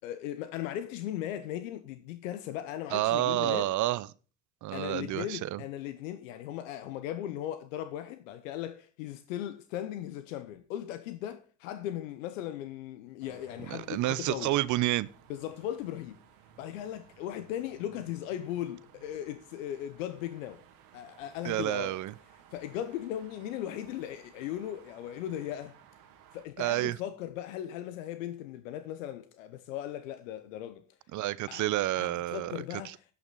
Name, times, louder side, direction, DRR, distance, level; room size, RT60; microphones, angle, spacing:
voice 1, 0.0-3.7 4.7-14.5 15.3-16.2 16.6-20.6 20.9-22.0 22.5-25.7 26.3-30.8 31.5-31.6 32.0-33.0, left 11 dB, 85° left, 0.9 m, -38 dB
voice 2, 2.9-4.1 4.6-5.6 13.7-15.1 21.4-22.1 26.6-27.0 31.1-32.5 32.8-32.9, right 15 dB, 50° right, 0.7 m, -29 dB
sound 1, 13.2-26.5, right 8 dB, 80° right, 2.2 m, -57 dB
16.0 x 5.9 x 3.9 m
hypercardioid pair, 80°, 38 cm